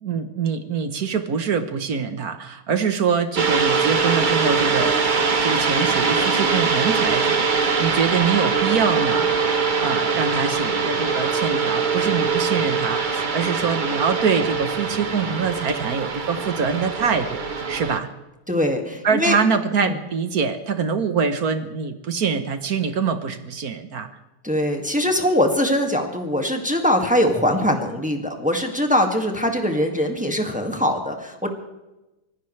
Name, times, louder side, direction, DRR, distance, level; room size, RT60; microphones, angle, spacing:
voice 1, 0.0-5.0 5.4-17.4 17.7-18.1 19.0-24.1, right 6 dB, 50° right, 10 dB, 1.3 m, -24 dB
sound 1, 3.4-18.0, right 5 dB, 35° right, 0.8 m, -22 dB
voice 2, 18.5-19.4 19.8-19.9 24.4-31.5, left 1 dB, 5° right, 3 dB, 1.8 m, -22 dB
25.0 x 16.5 x 3.3 m, 1.0 s
omnidirectional pair, 2.4 m